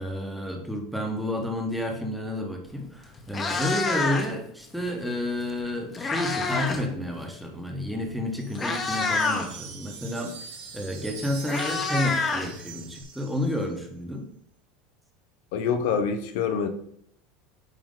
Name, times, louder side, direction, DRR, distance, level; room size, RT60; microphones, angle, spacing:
voice 1, 0.0-10.3 10.7-14.2, left 1 dB, ahead, 1.1 m, -30 dB
Meow, 2.7-2.8 3.2-4.5 5.5-6.9 7.1-7.4 8.1-8.2 8.5-9.5 10.8-10.9 11.1-13.0, left 4 dB, 20° left, 1.0 m, -28 dB
Wind chime, 8.4-13.8, right 6 dB, 90° right, 1.2 m, -43 dB
voice 2, 15.5-16.7, left 6 dB, 75° left, 0.7 m, -25 dB
8.9 x 3.0 x 3.8 m
supercardioid pair, 130°, 0 cm